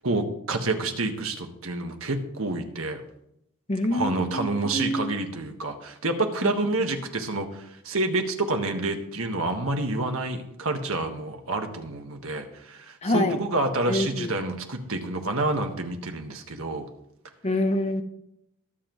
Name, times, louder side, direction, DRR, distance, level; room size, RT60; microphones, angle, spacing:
voice 1, 0.0-3.0 3.9-16.9, right 2 dB, 70° right, 5 dB, 1.5 m, -28 dB
voice 2, 3.7-5.0 6.4-6.5 13.0-13.4 13.9-14.3 17.4-18.0, left 1 dB, 30° left, 7 dB, 0.9 m, -26 dB
22.0 x 7.6 x 3.1 m, 0.78 s
head